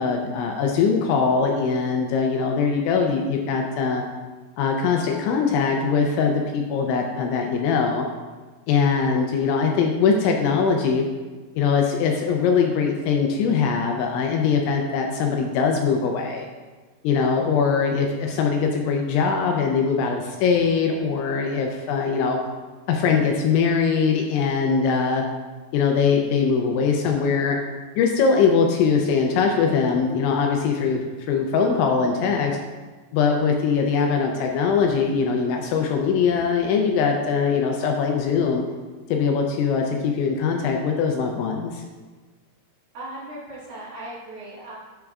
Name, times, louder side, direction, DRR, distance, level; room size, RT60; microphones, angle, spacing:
voice 1, 0.0-4.0 4.6-8.0 8.7-11.1 11.6-16.5 17.0-22.4 22.9-25.2 25.7-27.6 28.0-32.6 33.1-38.6 39.1-41.8, left 5 dB, 80° left, 2 dB, 2.8 m, -22 dB
voice 2, 42.9-44.7, right 1 dB, 55° right, -9 dB, 3.3 m, -37 dB
10.5 x 7.7 x 2.4 m, 1.4 s
omnidirectional pair, 5.7 m